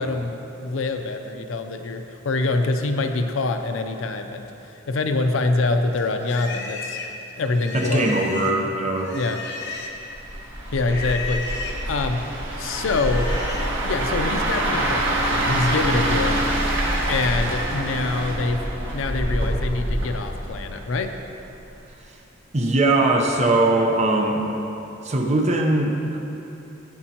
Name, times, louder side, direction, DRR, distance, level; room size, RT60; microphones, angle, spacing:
voice 1, 0.0-4.5 4.9-7.0 7.4-8.2 9.1-9.4 10.7-11.4 11.9-12.2 12.6-13.3 13.8-16.5 17.1-21.1, left 3 dB, 85° left, 6 dB, 0.5 m, -25 dB
Livestock farm animals working animals, 5.9-10.1 10.7-11.8 12.6-13.8 14.2-17.8, left 3 dB, 60° left, 0.9 m, -35 dB
voice 2, 7.7-9.2 22.5-24.4 25.0-26.2, right 2 dB, 35° right, 1 dB, 0.8 m, -20 dB
sound 1, 10.1-21.2 21.6-21.9, right 1 dB, 70° right, 1.6 m, -25 dB
13.0 x 8.8 x 2.9 m, 2.9 s
head